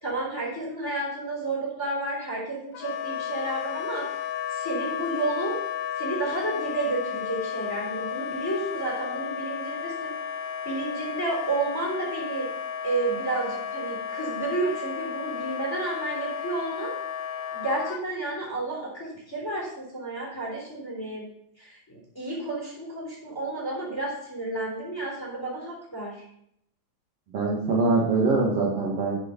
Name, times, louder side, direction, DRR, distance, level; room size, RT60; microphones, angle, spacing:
voice 1, 0.0-4.0 4.5-5.6 6.0-10.1 10.6-12.5 12.8-16.9 17.5-21.2 21.6-26.2, right 2 dB, 5° left, -4 dB, 3.0 m, -31 dB
Wind instrument woodwind instrument, 2.7-18.0, left 8 dB, 85° left, 2.7 m, -33 dB
voice 2, 27.3-29.2, right 3 dB, 55° right, -4 dB, 1.9 m, -23 dB
9.1 x 6.2 x 5.1 m, 0.72 s
omnidirectional pair, 4.8 m